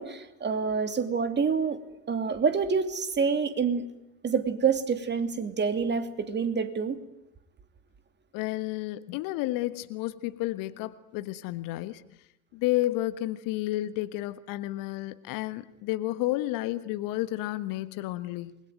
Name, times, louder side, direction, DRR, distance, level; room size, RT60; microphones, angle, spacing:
voice 1, 0.0-3.9 4.2-7.0, right 5 dB, 20° right, 2.7 m, -27 dB
voice 2, 8.3-12.0 12.5-18.6, left 16 dB, 45° left, 1.4 m, -31 dB
28.5 x 21.5 x 9.4 m
figure-of-eight pair, 80°, 46 cm